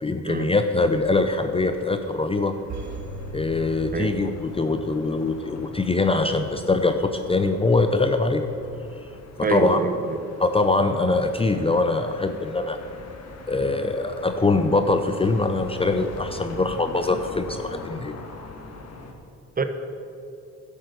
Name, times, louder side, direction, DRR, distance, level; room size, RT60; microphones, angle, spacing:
voice 1, 0.0-2.6 3.3-8.4 9.5-9.8 10.4-12.8 13.5-18.2, left 3 dB, 20° left, 7 dB, 0.6 m, -23 dB
sound 1, 0.7-19.1, left 3 dB, 55° left, 1.8 m, -42 dB
sound 2, 2.7-4.9 5.2-5.3, right 2 dB, 65° right, 2.0 m, -37 dB
voice 2, 9.4-10.0 19.6-19.7, right 3 dB, 30° right, 7 dB, 1.2 m, -25 dB
11.5 x 8.2 x 6.9 m, 2.6 s
cardioid pair, 90°, 30 cm